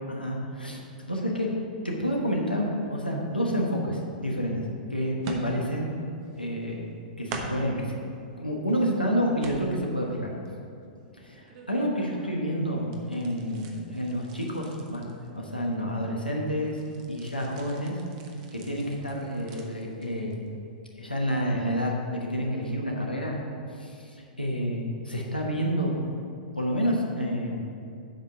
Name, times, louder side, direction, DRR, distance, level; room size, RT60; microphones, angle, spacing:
voice 1, 0.1-0.8 1.1-4.6 4.9-5.9 6.4-6.9 7.2-7.9 8.4-10.3 11.1-16.8 17.1-18.0 18.5-20.3 20.9-23.4 23.7-26.0 26.5-27.6, equal, 90° left, -2 dB, 1.2 m, -29 dB
sound 1, 4.4-4.5 5.2-5.9 6.2-6.9 7.3-7.8 8.4-8.9 9.4-10.1 10.4-12.5 12.8-16.0 16.4-20.6 20.9-21.1 21.6-21.7, right 3 dB, 40° right, 1.0 m, -43 dB
7.9 x 5.3 x 6.5 m, 2.5 s
figure-of-eight pair, 105°, 5 cm